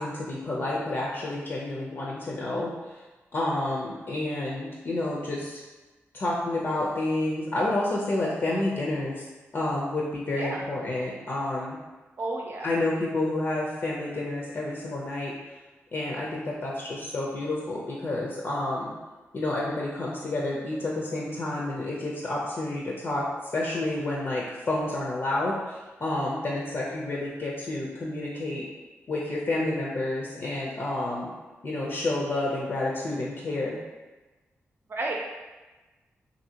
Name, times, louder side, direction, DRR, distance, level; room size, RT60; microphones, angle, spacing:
voice 1, 0.0-2.7 3.3-5.6 6.1-9.2 9.5-11.8 12.6-15.3 15.9-18.9 19.3-23.2 23.5-28.6 29.1-31.3 31.6-33.8, left 2 dB, 50° left, -4 dB, 0.5 m, -29 dB
voice 2, 12.2-12.7 34.9-35.1, right 2 dB, 50° right, -1 dB, 0.6 m, -31 dB
2.7 x 2.7 x 2.8 m, 1.2 s
cardioid pair, 85°, 5 cm